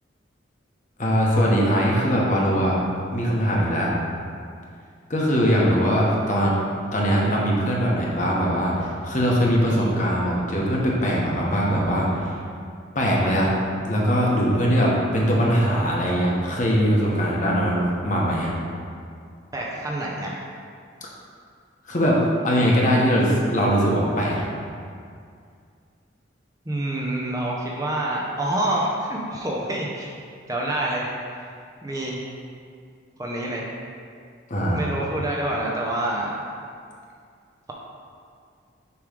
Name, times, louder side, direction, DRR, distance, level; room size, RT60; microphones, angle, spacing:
voice 1, 1.0-2.8 3.1-3.9 5.1-6.6 6.9-12.4 12.9-13.5 13.9-18.5 21.9-22.2 22.4-24.5 34.5-34.8, equal, 40° left, -3 dB, 1.0 m, -21 dB
voice 2, 19.5-20.4 26.7-30.1 30.5-31.4 31.8-32.2 33.2-33.7 34.7-36.4, right 1 dB, 20° right, -4 dB, 0.6 m, -27 dB
6.9 x 3.2 x 5.0 m, 2.3 s
head